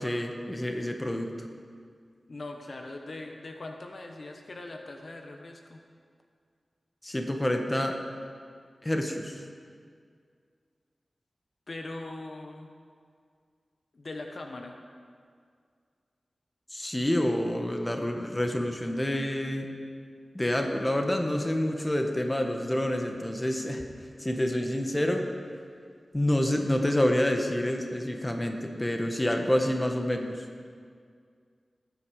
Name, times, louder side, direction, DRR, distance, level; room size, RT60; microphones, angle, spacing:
voice 1, 0.0-1.5 7.0-8.0 8.8-9.4 16.7-19.7 20.3-23.8 24.2-25.3 26.1-30.4, left 1 dB, 15° left, 3 dB, 1.4 m, -28 dB
voice 2, 2.3-5.8 11.7-12.7 13.9-14.8, left 2 dB, 60° left, 3 dB, 1.1 m, -41 dB
19.0 x 9.2 x 4.9 m, 2.2 s
wide cardioid pair, 75°, 0 cm